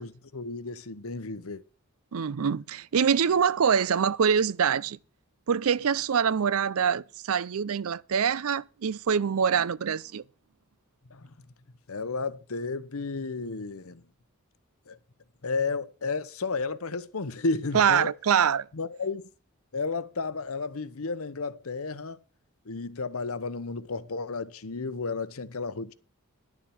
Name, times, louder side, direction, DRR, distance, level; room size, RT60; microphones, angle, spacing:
voice 1, 0.0-1.6 11.1-11.3 11.9-14.0 14.9-15.0 15.4-18.1 18.7-19.3 19.7-22.2 22.7-25.9, left 4 dB, 75° left, 0.9 m, -32 dB
voice 2, 2.1-5.0 5.5-10.2 17.7-18.7, right 7 dB, 75° right, 0.5 m, -24 dB
11.5 x 7.2 x 7.2 m
head